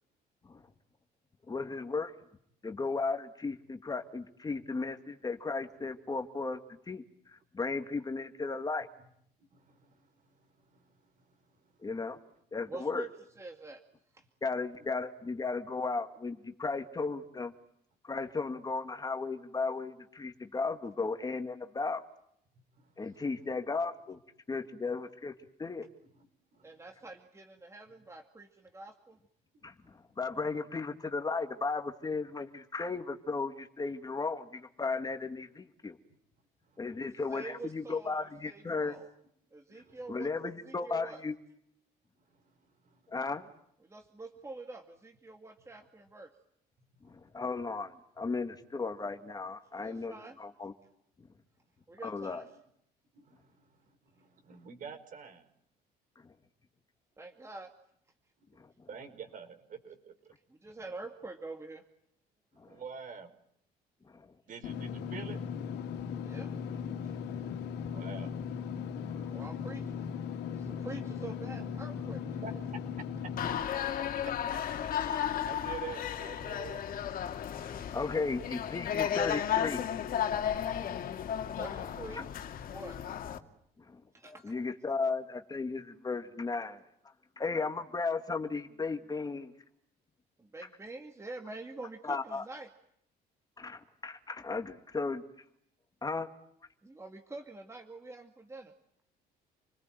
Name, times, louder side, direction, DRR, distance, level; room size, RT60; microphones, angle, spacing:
voice 1, 1.5-2.1 2.6-6.6 6.9-7.0 7.3-8.9 11.8-12.2 12.5-13.1 14.4-17.5 18.0-22.0 23.0-24.2 24.5-25.3 25.6-25.9 29.6-36.0 36.8-39.0 40.1-41.3 43.1-43.5 47.0-50.7 52.0-52.4 58.6-58.7 62.6-62.8 64.1-64.3 66.2-66.3 69.1-69.3 70.8-70.9 77.5-79.8 83.9-86.8 87.4-89.5 92.0-92.4 93.6-95.2 96.0-96.3, left 4 dB, 20° left, 7 dB, 2.0 m, -35 dB
voice 2, 12.7-13.8 14.1-14.2 26.6-29.2 36.8-39.1 39.5-41.2 43.8-46.3 49.7-50.4 51.9-52.6 57.2-57.7 60.5-61.8 66.2-66.5 67.0-67.1 69.3-70.1 70.5-72.6 81.6-82.3 82.7-83.0 84.1-84.5 90.4-92.7 96.8-98.7, right 3 dB, 15° right, 5 dB, 2.2 m, -46 dB
voice 3, 53.1-53.5 54.1-55.5 58.9-60.3 62.7-63.3 64.5-65.4 67.9-68.3 72.4-72.5 75.1-76.8 83.1-83.2, right 6 dB, 50° right, 8 dB, 4.9 m, -46 dB
Engine / Mechanisms, 64.6-73.6, left 7 dB, 80° left, 2.5 m, -38 dB
sound 1, 73.4-83.4, left 9 dB, 55° left, 2.4 m, -34 dB
29.0 x 20.5 x 9.1 m, 0.73 s
cardioid pair, 110°, 17 cm